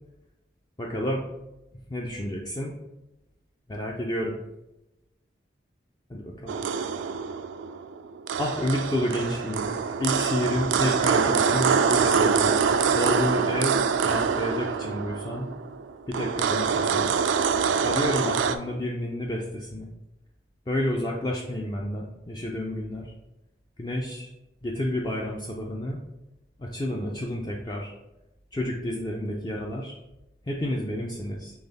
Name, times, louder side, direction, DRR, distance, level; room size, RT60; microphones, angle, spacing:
voice 1, 0.8-1.3 1.9-2.7 3.7-4.4 6.1-6.5 8.4-9.7 10.0-12.6 12.9-15.5 16.1-17.1 17.8-19.9 20.7-23.0 23.8-24.3 24.6-26.0 26.6-27.9 28.5-29.9 30.5-31.5, left 1 dB, 20° left, -1 dB, 0.4 m, -30 dB
sound 1, 6.5-18.6, right 6 dB, 85° right, 0.3 m, -25 dB
3.9 x 3.3 x 4.0 m, 0.96 s
head